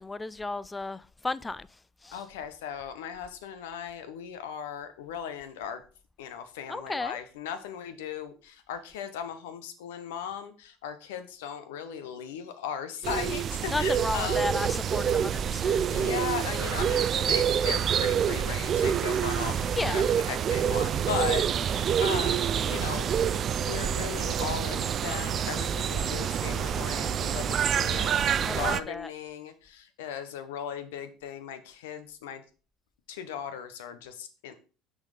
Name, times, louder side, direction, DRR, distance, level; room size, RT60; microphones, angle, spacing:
voice 1, 0.0-1.7 2.0-2.2 6.7-7.2 13.7-16.1 19.8-20.0 28.4-29.1, left 2 dB, 15° left, 0.4 m, -33 dB
voice 2, 2.1-5.8 6.2-14.9 15.9-23.1 23.6-32.4 33.1-34.5, left 8 dB, 85° left, 0.9 m, -37 dB
sound 1, 13.0-28.8, right 8 dB, 45° right, 0.4 m, -27 dB
6.1 x 4.2 x 4.9 m
hypercardioid pair, 80°, 0 cm